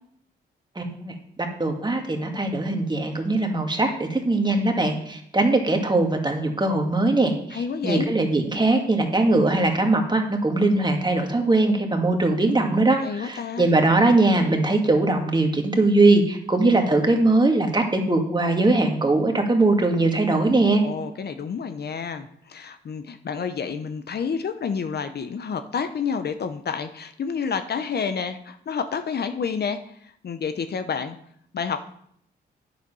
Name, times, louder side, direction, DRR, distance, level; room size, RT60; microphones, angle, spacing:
voice 1, 0.8-1.1 1.6-20.8, right 2 dB, 25° right, 3 dB, 1.9 m, -21 dB
voice 2, 7.5-8.1 13.0-13.7 20.8-29.8 30.2-31.2 31.5-31.9, left 6 dB, 60° left, 9 dB, 0.8 m, -29 dB
9.2 x 7.2 x 5.5 m, 0.68 s
cardioid pair, 65°, 19 cm